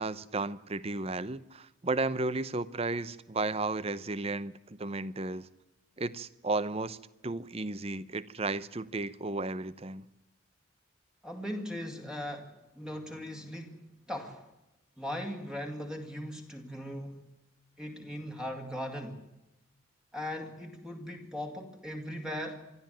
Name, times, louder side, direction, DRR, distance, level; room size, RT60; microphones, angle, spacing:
voice 1, 0.0-5.5 6.0-7.0 7.2-10.0, right 3 dB, 30° right, 0.7 m, -33 dB
voice 2, 11.2-13.8 14.1-14.4 15.0-17.2 17.8-19.2 20.1-22.6, equal, 5° right, 2.3 m, -39 dB
25.0 x 13.0 x 9.1 m
head